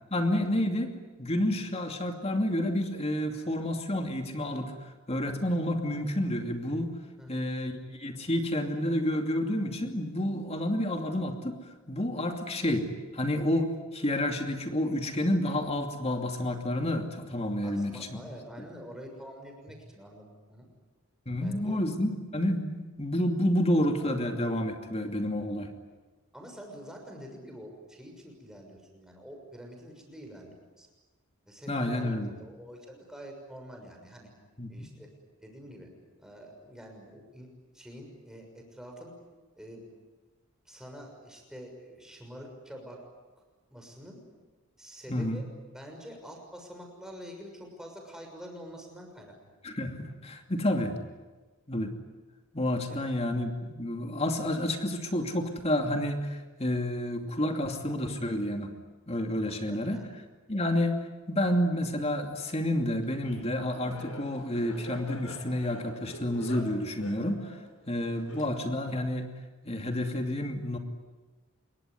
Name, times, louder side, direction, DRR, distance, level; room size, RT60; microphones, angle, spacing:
voice 1, 0.1-0.9 1.2-4.7 5.1-7.0 7.3-11.6 11.9-12.8 13.1-18.2 21.3-25.7 31.7-32.3 34.6-34.9 45.1-45.4 49.6-51.0 51.7-51.9 52.5-58.7 59.1-60.0 60.5-67.5 67.9-69.3 69.6-70.8, left 1 dB, 30° left, 5 dB, 2.7 m, -29 dB
voice 2, 17.6-20.7 21.4-21.8 26.3-30.9 31.5-34.3 34.7-35.1 35.4-35.9 36.2-37.5 37.7-39.1 39.6-39.9 40.6-43.0 43.7-44.2 44.8-45.4 45.7-49.3 52.9-53.1 59.4-60.1, equal, 5° right, 1 dB, 6.4 m, -46 dB
Laughter, 63.0-68.9, left 1 dB, 75° left, 6.3 m, -47 dB
26.5 x 22.5 x 9.7 m, 1.3 s
head